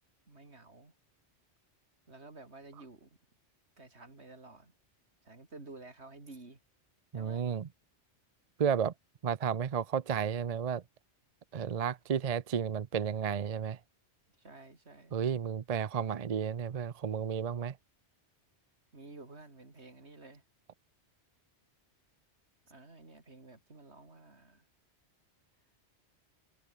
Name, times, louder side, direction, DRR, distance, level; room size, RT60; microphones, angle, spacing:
voice 1, 0.3-0.9 2.1-3.2 3.8-4.7 5.2-6.6 7.1-7.5 14.4-15.2 18.9-20.4 22.7-24.7, right 3 dB, 65° right, 3.7 m, -52 dB
voice 2, 7.1-7.7 8.6-8.9 9.2-10.8 11.5-13.8 15.1-17.8, right 7 dB, 45° right, 0.6 m, -32 dB
omnidirectional pair, 1.2 m